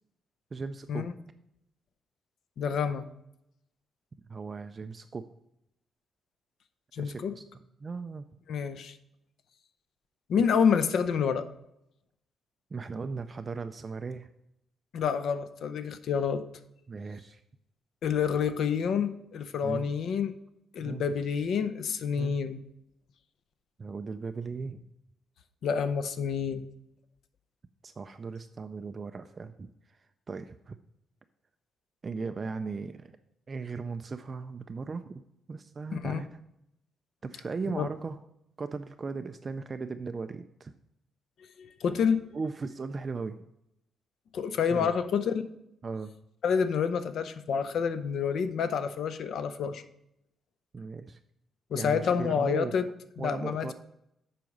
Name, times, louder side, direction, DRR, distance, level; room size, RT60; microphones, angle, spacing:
voice 1, 0.5-1.1 4.3-5.3 7.0-7.4 7.8-8.3 12.7-14.3 16.9-17.4 19.6-19.9 20.8-21.1 22.2-22.4 23.8-24.8 27.8-29.7 30.0-30.8 32.0-33.1 33.5-35.2 35.5-36.4 37.2-38.2 38.6-40.7 42.3-43.4 44.7-44.9 45.8-46.1 50.7-51.2 51.7-52.7 53.2-53.7, right 4 dB, 25° right, 8 dB, 0.3 m, -37 dB
voice 2, 2.6-3.1 6.9-7.3 8.5-9.0 10.3-11.5 14.9-16.4 18.0-20.3 20.7-22.6 25.6-26.7 35.9-36.2 37.7-37.9 41.6-42.2 44.3-45.5 46.4-49.8 51.7-52.8 53.2-53.7, left 6 dB, 60° left, 11 dB, 0.6 m, -28 dB
7.7 x 4.8 x 5.2 m, 0.82 s
cardioid pair, 155°, 0 cm